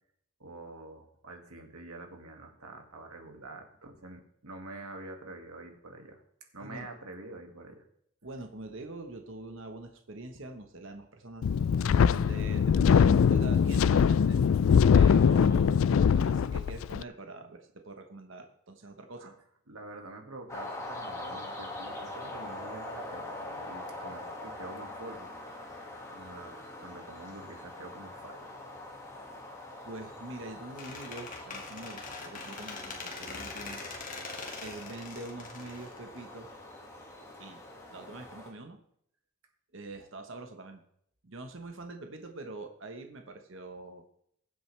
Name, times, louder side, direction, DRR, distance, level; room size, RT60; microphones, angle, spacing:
voice 1, 0.4-6.2 6.5-7.8 19.2-19.3 19.7-25.3 25.6-28.5 34.2-34.5, right 2 dB, 90° right, 3 dB, 2.1 m, -47 dB
voice 2, 8.2-11.5 11.7-14.4 14.9-19.3 29.8-33.8 34.6-36.5 37.4-37.6 37.9-38.8 39.7-40.8 41.2-44.0, right 2 dB, 60° right, 5 dB, 1.2 m, -44 dB
Wind, 11.4-17.0, left 7 dB, 70° left, 0.3 m, -22 dB
sound 1, 20.5-38.5, left 1 dB, 15° left, 1.9 m, -43 dB
Squeak, 30.8-36.6, left 3 dB, 35° left, 1.9 m, -42 dB
21.0 x 7.9 x 3.3 m, 0.70 s
head